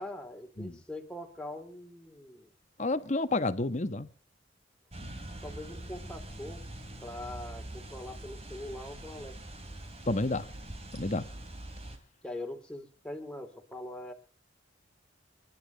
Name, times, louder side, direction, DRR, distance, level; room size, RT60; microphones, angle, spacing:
voice 1, 0.0-2.5 5.4-6.6 7.0-9.4 12.2-14.1, left 1 dB, 5° left, 2.9 m, -42 dB
voice 2, 2.8-4.1 10.1-10.5 10.9-11.2, left 2 dB, 40° left, 1.3 m, -30 dB
sound 1, 4.9-12.0, right 1 dB, 35° right, 3.3 m, -44 dB
29.0 x 11.5 x 4.0 m
head